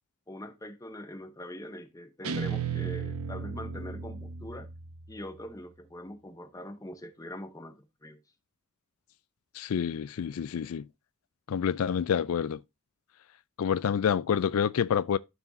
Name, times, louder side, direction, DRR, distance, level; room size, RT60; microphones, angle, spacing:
voice 1, 0.3-4.7 5.1-8.2, left 1 dB, 15° left, 0.8 m, -43 dB
Guitar, 2.2-5.5, right 6 dB, 90° right, 1.0 m, -35 dB
voice 2, 9.5-10.9 11.5-12.6 13.6-15.2, left 7 dB, 80° left, 0.4 m, -28 dB
14.0 x 4.6 x 2.7 m
head